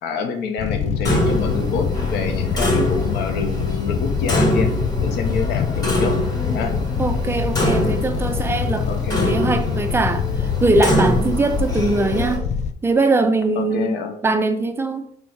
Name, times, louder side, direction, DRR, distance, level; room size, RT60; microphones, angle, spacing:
voice 1, 0.0-4.7 5.0-6.2 6.5-6.8 8.9-9.4 13.6-14.1, left 5 dB, 75° left, 0.8 m, -27 dB
Ride On A Harley, 0.6-12.7, left 6 dB, 45° left, 0.4 m, -24 dB
Clock, 1.0-12.4, equal, 20° left, 1.3 m, -25 dB
voice 2, 7.0-10.3 10.6-12.5 12.8-14.0 14.2-15.1, right 2 dB, 15° right, 0.4 m, -21 dB
4.0 x 2.3 x 4.6 m
cardioid pair, 110°, 17 cm